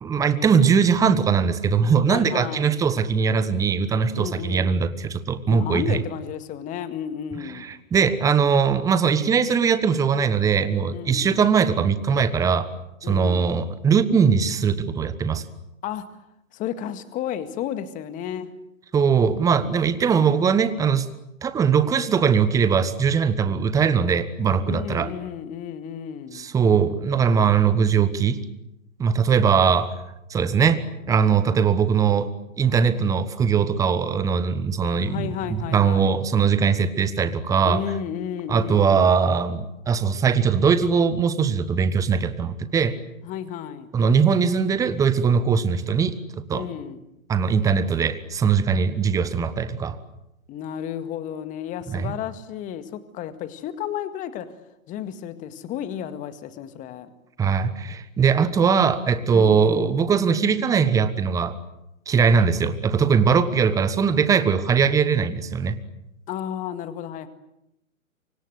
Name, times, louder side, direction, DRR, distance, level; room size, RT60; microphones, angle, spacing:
voice 1, 0.0-6.0 7.5-12.7 13.0-15.5 18.9-21.1 21.4-25.1 26.3-28.4 29.0-29.9 30.3-30.8 31.1-32.3 32.6-37.8 38.5-43.0 43.9-46.7 47.3-50.0 51.9-52.1 57.4-61.6 62.1-65.8, right 6 dB, 10° right, 13 dB, 1.2 m, -21 dB
voice 2, 2.1-2.7 4.2-4.7 5.5-7.7 10.9-11.4 13.0-13.5 15.8-16.0 16.5-18.5 24.6-26.5 35.1-36.2 37.6-39.1 43.2-43.9 46.5-47.0 50.5-54.5 54.9-57.1 59.3-60.0 66.3-67.3, left 9 dB, 20° left, 11 dB, 1.9 m, -32 dB
28.0 x 25.0 x 8.0 m, 0.84 s
figure-of-eight pair, 130°, 41 cm